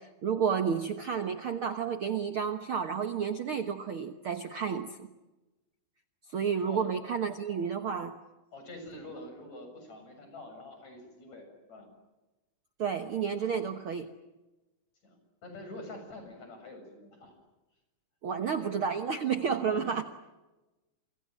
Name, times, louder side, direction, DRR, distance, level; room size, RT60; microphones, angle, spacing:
voice 1, 0.0-5.0 6.3-8.2 12.8-14.1 18.2-20.0, right 7 dB, 55° right, 8 dB, 1.6 m, -31 dB
voice 2, 8.5-11.9 13.4-13.8 15.0-17.3 18.4-18.8 19.7-19.8, left 2 dB, 55° left, 6 dB, 8.4 m, -46 dB
29.5 x 25.5 x 7.4 m, 1.1 s
omnidirectional pair, 3.8 m